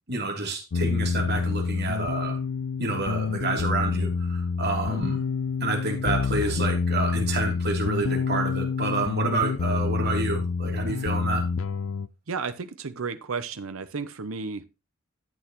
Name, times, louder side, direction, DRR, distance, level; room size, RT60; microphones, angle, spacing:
voice 1, 0.1-2.4 2.8-5.2 5.6-11.5, right 3 dB, 55° right, 3.0 m, -29 dB
sound 1, 0.7-12.1, left 5 dB, 75° left, 0.5 m, -27 dB
voice 2, 12.3-14.6, right 4 dB, 80° right, 0.8 m, -33 dB
12.0 x 7.9 x 3.0 m
head